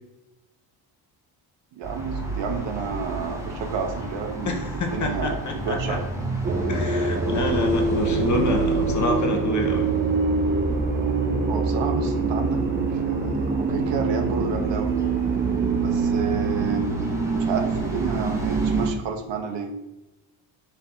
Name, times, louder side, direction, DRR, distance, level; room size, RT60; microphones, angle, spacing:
sound 1, 1.8-18.9, right 2 dB, 5° right, 0.9 m, -34 dB
voice 1, 1.8-4.6 4.9-5.4 5.7-6.0 11.5-12.6 12.9-15.0 15.8-16.9 17.4-19.7, right 5 dB, 70° right, 5 dB, 0.8 m, -30 dB
voice 2, 4.4-6.0 6.7-9.9, left 2 dB, 40° left, 3 dB, 0.8 m, -27 dB
sound 2, 6.4-18.9, right 4 dB, 25° right, 0.5 m, -24 dB
4.5 x 2.8 x 3.6 m, 0.97 s
cardioid pair, 90°, 46 cm